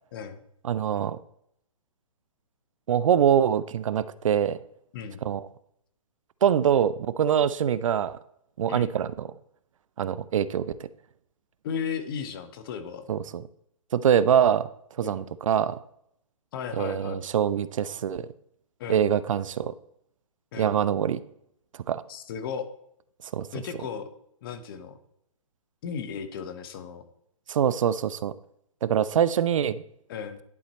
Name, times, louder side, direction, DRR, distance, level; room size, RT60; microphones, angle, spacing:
voice 1, 0.1-0.4 4.9-5.2 8.7-8.9 11.6-13.1 15.0-15.2 16.5-17.2 18.8-19.0 20.5-20.7 22.1-22.7 23.5-24.1 24.4-25.0 25.8-27.0 30.1-30.4, left 7 dB, 40° left, 10 dB, 0.9 m, -35 dB
voice 2, 0.6-1.2 2.9-4.6 5.2-5.4 6.4-8.2 8.6-9.3 10.0-10.9 13.1-13.4 13.9-14.7 15.0-15.8 16.8-18.3 18.9-19.7 20.6-21.2 21.9-22.0 23.3-23.5 27.5-28.3 28.8-29.8, right 9 dB, 65° right, 16 dB, 0.5 m, -24 dB
11.0 x 4.3 x 4.2 m, 0.74 s
hypercardioid pair, 145°, 18 cm